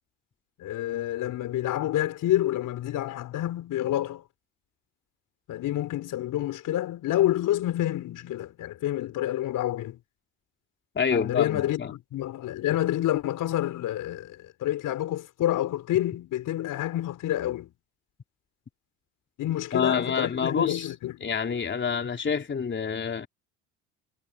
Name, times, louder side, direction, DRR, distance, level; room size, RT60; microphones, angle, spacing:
voice 1, 0.6-4.2 5.5-10.0 11.1-17.7 19.4-21.3, left 13 dB, 60° left, 4.2 m, -28 dB
voice 2, 11.0-11.9 19.7-20.9 21.2-23.3, left 6 dB, 30° left, 3.8 m, -27 dB
hypercardioid pair, 75°, 35 cm